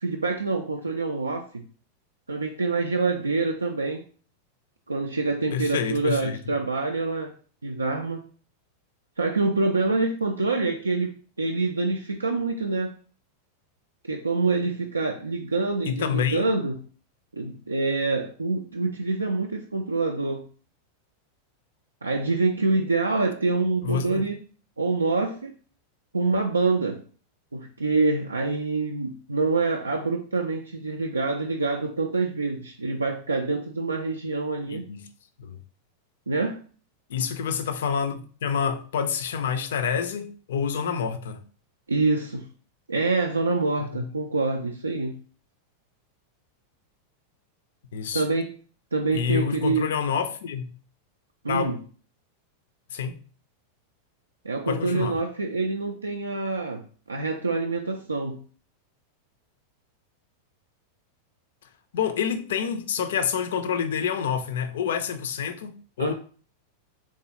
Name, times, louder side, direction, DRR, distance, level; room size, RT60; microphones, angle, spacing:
voice 1, 0.0-1.6 2.3-4.0 4.9-7.3 7.6-8.2 9.2-13.0 14.1-16.8 17.3-20.4 22.0-24.4 24.8-25.5 26.1-27.0 27.5-34.8 36.3-36.6 41.9-42.5 42.9-45.2 48.1-48.5 48.9-49.9 51.4-51.7 54.4-58.4 66.0-66.1, right 3 dB, 80° right, 0.3 m, -26 dB
voice 2, 5.5-6.5 15.9-16.5 23.8-24.2 34.6-35.1 35.4-35.6 37.1-41.4 43.9-44.1 47.9-48.2 49.1-50.7 51.5-51.8 52.9-53.2 54.7-55.2 61.9-66.1, left 7 dB, 60° left, 0.4 m, -28 dB
3.5 x 3.0 x 2.8 m
figure-of-eight pair, 90°, 0 cm